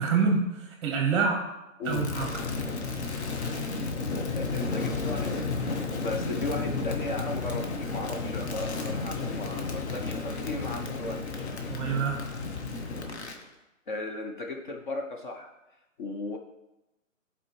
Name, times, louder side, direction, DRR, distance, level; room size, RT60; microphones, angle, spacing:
voice 1, 0.0-1.4 1.8-2.3 11.7-12.2, right 5 dB, 20° right, 2 dB, 0.9 m, -26 dB
Crackle, 1.8-13.4, left 3 dB, 55° left, 1.0 m, -32 dB
voice 2, 4.3-11.9 13.9-15.5 16.0-16.4, left 2 dB, 40° left, 2 dB, 0.6 m, -36 dB
11.0 x 4.2 x 3.2 m, 0.97 s
hypercardioid pair, 145°, 40 cm